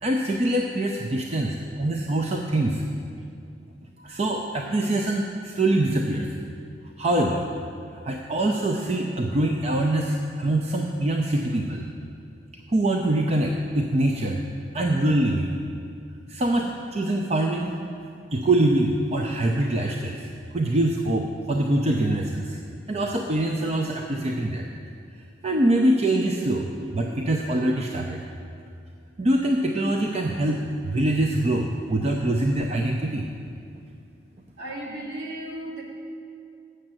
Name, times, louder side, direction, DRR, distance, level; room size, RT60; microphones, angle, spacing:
voice 1, 0.0-2.8 4.0-6.3 7.0-7.5 8.0-11.8 12.7-14.4 14.7-15.6 16.3-17.8 18.3-20.3 20.5-22.6 22.9-24.6 25.4-26.7 26.9-28.2 29.2-33.3, right 1 dB, 35° right, 2 dB, 0.5 m, -24 dB
voice 2, 34.6-35.8, right 1 dB, 65° right, -3 dB, 1.9 m, -35 dB
7.9 x 6.6 x 7.4 m, 2.4 s
head